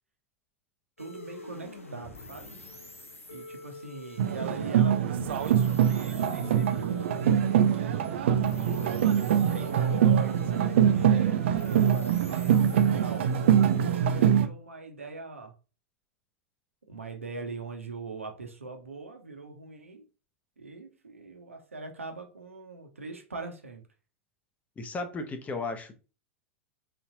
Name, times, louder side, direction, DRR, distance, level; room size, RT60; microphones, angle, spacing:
sound 1, 1.0-14.5, left 2 dB, 85° left, 1.0 m, -45 dB
voice 1, 1.0-2.6 3.3-5.0 5.4-7.3 8.6-15.5 16.9-20.1 20.6-23.8, right 3 dB, 80° right, 1.0 m, -41 dB
sound 2, 4.2-14.5, right 9 dB, 60° right, 0.5 m, -24 dB
voice 2, 24.8-25.9, left 3 dB, 20° left, 0.8 m, -34 dB
4.2 x 4.1 x 2.8 m
figure-of-eight pair, 90°, 7 cm